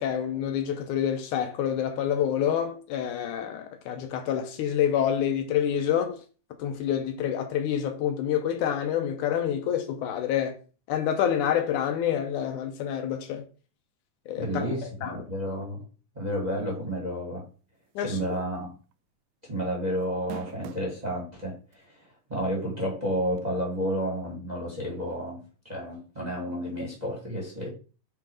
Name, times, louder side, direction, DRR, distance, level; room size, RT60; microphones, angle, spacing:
voice 1, 0.0-6.2 6.6-10.6 10.9-13.4 14.3-14.7 15.0-15.2 18.0-18.2, left 9 dB, 75° left, 2.1 m, -27 dB
voice 2, 14.4-15.8 16.1-17.4 18.0-18.7 19.4-27.7, equal, 15° right, 1.8 m, -31 dB
sound 1, 18.3-18.6 18.9-19.0 20.0-21.0 21.7-21.8 23.4-23.5, right 9 dB, 90° right, 2.2 m, -41 dB
8.2 x 3.6 x 4.8 m
omnidirectional pair, 3.7 m